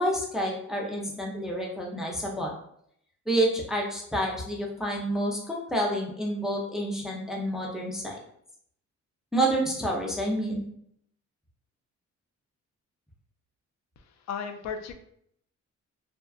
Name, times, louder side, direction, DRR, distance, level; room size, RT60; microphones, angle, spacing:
voice 1, 0.0-2.5 3.3-8.2 9.3-10.6, right 1 dB, ahead, -2 dB, 0.5 m, -28 dB
voice 2, 14.0-14.9, left 6 dB, 65° left, 7 dB, 0.4 m, -36 dB
2.7 x 2.2 x 2.3 m, 0.69 s
cardioid pair, 100°, 30 cm